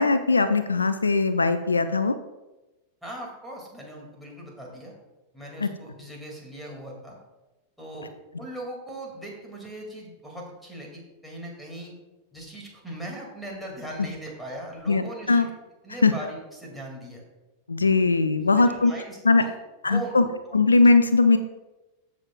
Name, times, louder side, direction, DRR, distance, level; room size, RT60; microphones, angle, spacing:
voice 1, 0.0-2.2 5.6-5.7 14.9-15.5 16.0-16.1 17.7-18.9 19.2-19.4 19.8-20.3 20.5-21.4, left 3 dB, 80° left, 11 dB, 0.5 m, -20 dB
voice 2, 3.0-4.9 5.3-7.2 7.8-8.1 8.4-11.9 12.3-15.5 15.8-17.2 18.6-19.5 19.8-20.6, right 1 dB, ahead, -3 dB, 2.9 m, -39 dB
14.5 x 6.3 x 2.6 m, 1.0 s
figure-of-eight pair, 90°, 0 cm